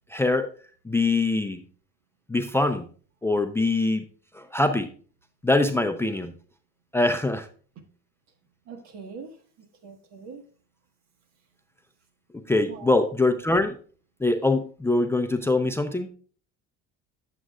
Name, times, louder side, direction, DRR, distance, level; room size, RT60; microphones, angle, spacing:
voice 1, 0.1-0.5 0.9-1.6 2.3-2.9 3.2-4.0 4.3-4.9 5.4-6.3 6.9-7.5 12.5-13.8 14.2-16.1, left 2 dB, 10° left, 8 dB, 0.5 m, -23 dB
voice 2, 8.7-9.3 9.8-10.4 12.7-13.0, right 5 dB, 60° right, 5 dB, 1.5 m, -42 dB
9.1 x 7.6 x 2.4 m, 0.42 s
supercardioid pair, 100°, 31 cm